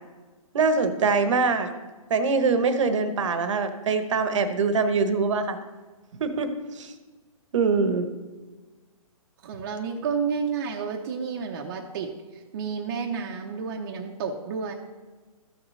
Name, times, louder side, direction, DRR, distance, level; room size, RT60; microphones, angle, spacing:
voice 1, 0.5-1.7 2.1-5.6 6.2-6.9 7.5-8.1, right 4 dB, 55° right, 9 dB, 1.0 m, -23 dB
voice 2, 9.4-14.7, right 6 dB, 35° right, 1 dB, 0.7 m, -31 dB
14.0 x 6.2 x 3.2 m, 1.3 s
hypercardioid pair, 155°, 19 cm